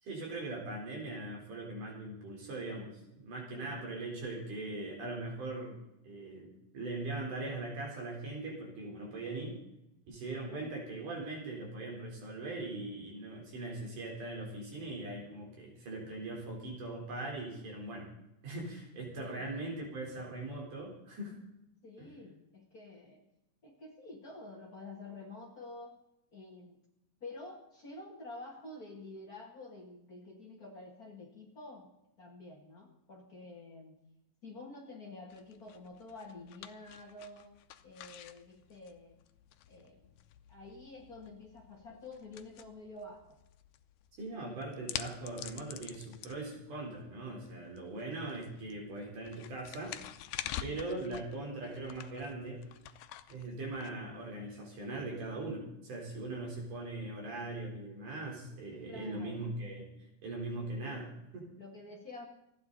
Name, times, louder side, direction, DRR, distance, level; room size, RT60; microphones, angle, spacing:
voice 1, 0.0-2.9 3.2-5.8 6.1-9.6 10.1-18.1 18.4-21.4 22.0-22.1 44.2-50.0 50.6-52.6 53.3-59.9 60.2-61.5, right 2 dB, 85° right, -1 dB, 5.5 m, -40 dB
voice 2, 10.5-10.8 19.2-19.5 21.8-23.2 23.6-26.0 26.3-26.8 27.2-31.9 32.2-34.0 34.4-37.5 37.8-39.2 39.7-40.1 40.5-43.4 44.5-44.6 50.4-50.8 58.9-59.4 61.6-62.3, left 2 dB, 35° left, 0 dB, 1.8 m, -49 dB
sound 1, 35.3-54.5, left 11 dB, 90° left, 2.3 m, -48 dB
27.5 x 9.5 x 4.1 m, 0.86 s
omnidirectional pair, 3.5 m